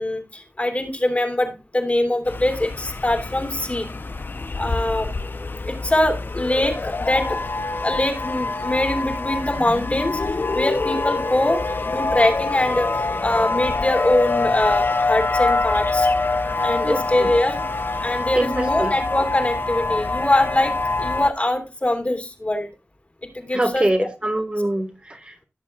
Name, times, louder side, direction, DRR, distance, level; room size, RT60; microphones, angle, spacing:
voice 1, 0.0-3.9 4.6-5.1 5.6-7.4 7.8-10.2 10.5-16.1 16.6-17.6 18.0-22.7 23.2-23.9, left 1 dB, 30° left, 2.8 m, -23 dB
sound 1, 2.3-21.3, left 3 dB, 50° left, 0.8 m, -25 dB
voice 2, 16.8-17.3 18.3-18.9 23.5-25.4, right 1 dB, 25° right, 1.6 m, -24 dB
16.5 x 7.1 x 2.4 m
wide cardioid pair, 80°, 4 cm